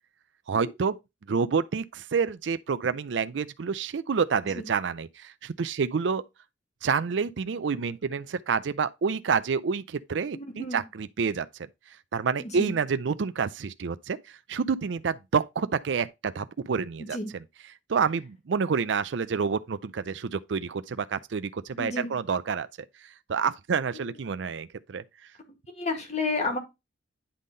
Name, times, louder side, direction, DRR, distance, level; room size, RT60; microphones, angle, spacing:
voice 1, 0.5-1.0 1.3-6.2 6.8-11.5 12.1-17.2 17.9-22.7 23.3-25.0, right 5 dB, 70° right, 0.4 m, -28 dB
voice 2, 10.3-10.8 12.4-12.7 17.1-17.3 21.7-22.1 24.1-24.2 25.7-26.6, left 2 dB, 40° left, 1.8 m, -31 dB
10.0 x 3.7 x 3.8 m
head